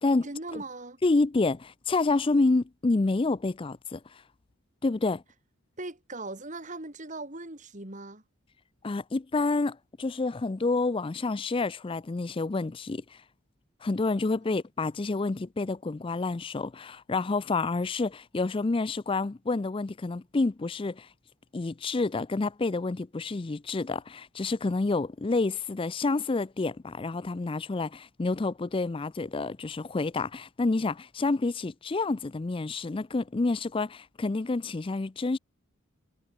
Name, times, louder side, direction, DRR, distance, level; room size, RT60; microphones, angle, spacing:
voice 1, 0.2-1.0 5.8-8.2 14.5-14.6, right 2 dB, 35° right, 2.9 m, -39 dB
voice 2, 1.0-4.0 4.8-5.2 8.8-13.2 13.8-21.1 21.5-35.4, left 3 dB, 25° left, 0.4 m, -28 dB
head